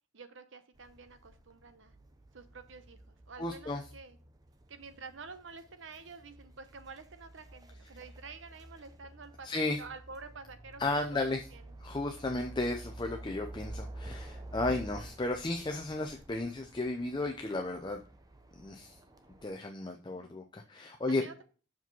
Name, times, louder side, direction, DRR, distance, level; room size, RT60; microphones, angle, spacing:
voice 1, 0.1-1.9 2.3-4.2 4.7-11.7 14.9-15.1 20.1-20.3 21.1-21.4, right 4 dB, 75° right, 10 dB, 0.9 m, -49 dB
sound 1, 0.8-19.5, right 1 dB, 20° right, 0.6 m, -50 dB
voice 2, 3.4-3.8 9.4-9.8 10.8-11.4 11.8-18.0 18.6-19.0 19.4-21.2, left 2 dB, 25° left, 4 dB, 0.5 m, -34 dB
6.0 x 4.9 x 5.3 m, 0.39 s
head